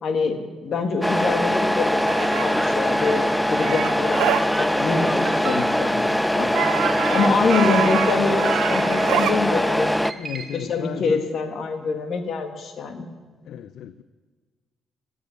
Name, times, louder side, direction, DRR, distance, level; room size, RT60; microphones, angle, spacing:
voice 1, 0.0-4.2 4.6-6.5 7.1-9.9 10.3-13.1, left 4 dB, 60° left, 6 dB, 1.7 m, -25 dB
Truck, 1.0-10.1, equal, 5° left, 0.5 m, -22 dB
sound 1, 2.1-4.5 6.5-9.4, right 11 dB, 90° right, 0.6 m, -27 dB
sound 2, 5.2-6.2 6.8-7.5 8.4-9.3 10.0-10.7, right 4 dB, 45° right, 1.7 m, -35 dB
voice 2, 10.1-11.3 13.5-14.0, left 10 dB, 75° left, 14 dB, 0.4 m, -35 dB
13.5 x 8.5 x 9.1 m, 1.5 s
cardioid pair, 90°, 0 cm